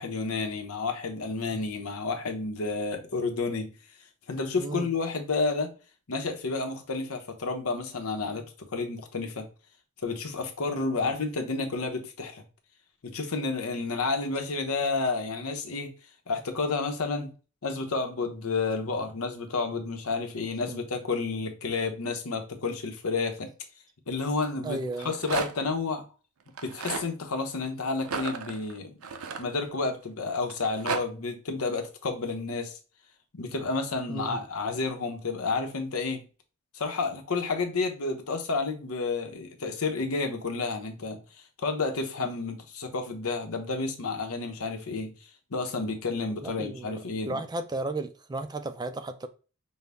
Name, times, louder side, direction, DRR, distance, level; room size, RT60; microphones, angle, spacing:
voice 1, 0.0-3.7 4.3-5.7 6.1-9.5 10.0-12.4 13.0-15.9 16.3-17.3 17.6-23.5 24.1-26.0 26.6-29.0 29.4-32.8 33.3-36.2 36.7-41.2 41.6-45.1 45.5-47.4, left 3 dB, 90° left, 0.8 m, -30 dB
voice 2, 4.6-4.9 11.0-11.1 20.7-20.8 24.6-25.1 34.1-34.4 46.4-49.3, right 2 dB, 20° right, 0.3 m, -34 dB
Rattle, 24.8-25.7 26.5-27.1 28.0-30.0 30.5-31.0, right 5 dB, 80° right, 0.5 m, -34 dB
5.4 x 2.1 x 3.4 m
head